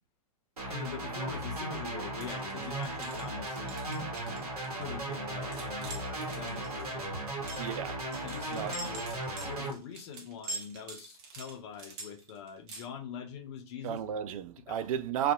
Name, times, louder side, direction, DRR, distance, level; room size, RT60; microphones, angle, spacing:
sound 1, 0.6-9.7, right 1 dB, 80° right, 0.9 m, -36 dB
voice 1, 0.7-3.8 4.7-7.2 8.2-9.0 9.4-14.3 14.7-15.0, left 7 dB, 50° left, 0.4 m, -44 dB
sound 2, 2.2-12.9, right 2 dB, 45° right, 0.8 m, -45 dB
voice 2, 7.6-8.0 8.5-8.8 13.8-15.3, right 9 dB, 65° right, 0.4 m, -33 dB
2.6 x 2.2 x 2.3 m
figure-of-eight pair, 105°, 19 cm